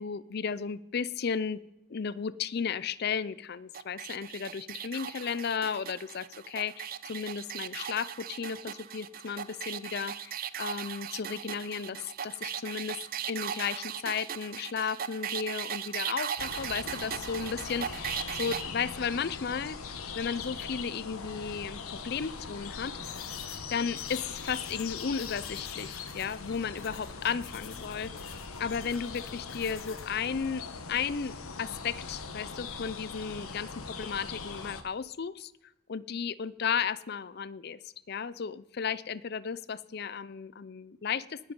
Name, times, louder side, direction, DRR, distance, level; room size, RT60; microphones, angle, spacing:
voice 1, 0.0-1.6 1.9-13.0 13.3-19.8 20.1-23.0 23.7-28.1 28.6-30.6 30.9-35.5 35.9-37.8 38.1-41.5, left 6 dB, 50° left, 19 dB, 0.4 m, -34 dB
sound 1, 3.7-18.6, right 9 dB, 40° right, 0.5 m, -38 dB
sound 2, 16.4-34.8, left 5 dB, 85° left, 1.2 m, -41 dB
sound 3, 23.0-30.1, left 8 dB, 65° left, 1.4 m, -51 dB
19.5 x 8.0 x 5.3 m, 0.95 s
head